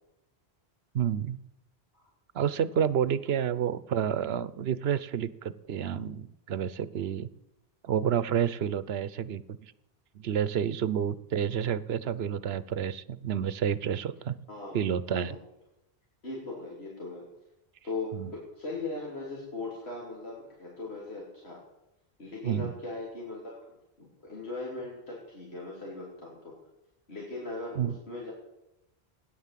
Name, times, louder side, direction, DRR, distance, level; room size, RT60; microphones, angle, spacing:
voice 1, 0.9-1.4 2.3-7.3 7.8-9.6 10.1-14.3 14.7-15.3 18.1-18.3 22.4-22.7 27.8-27.9, right 8 dB, 75° right, 16 dB, 1.0 m, -29 dB
voice 2, 14.5-14.8 15.1-15.4 16.2-17.3 17.8-21.6 22.2-26.5 27.1-28.3, left 3 dB, 80° left, -4 dB, 3.4 m, -39 dB
17.0 x 10.0 x 7.5 m, 0.89 s
omnidirectional pair, 1.1 m